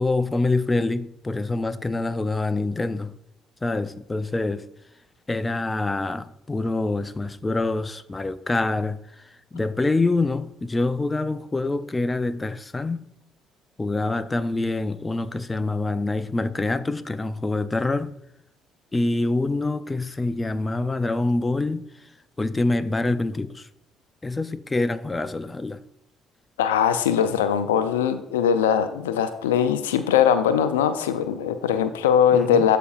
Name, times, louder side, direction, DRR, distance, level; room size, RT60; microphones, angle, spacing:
voice 1, 0.0-3.1 3.6-4.7 5.3-13.1 13.8-18.1 18.9-21.9 22.4-23.7 24.2-25.8 32.3-32.6, left 2 dB, 20° left, 0.5 m, -26 dB
voice 2, 26.6-32.8, left 8 dB, 85° left, 0.4 m, -21 dB
14.5 x 5.1 x 2.4 m
hypercardioid pair, 55°, 0 cm